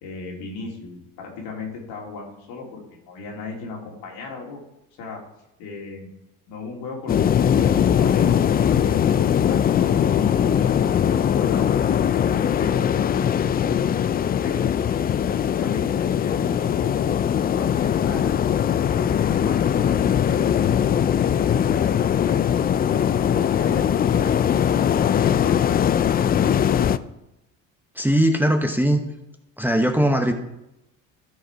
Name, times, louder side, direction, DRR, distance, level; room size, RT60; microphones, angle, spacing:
voice 1, 0.0-4.6 5.0-5.2 5.6-6.1 6.5-7.2 7.5-9.0 9.3-12.8 14.4-14.9 15.3-17.2 17.5-18.3 18.9-21.0 21.6-22.4 22.9-25.6, left 3 dB, 70° left, -1 dB, 2.9 m, -37 dB
sound 1, 7.1-27.0, left 9 dB, 25° left, 0.3 m, -20 dB
voice 2, 28.0-29.0 29.6-30.3, equal, 5° right, 4 dB, 1.0 m, -20 dB
13.0 x 4.8 x 4.6 m, 0.88 s
hypercardioid pair, 75°, 41 cm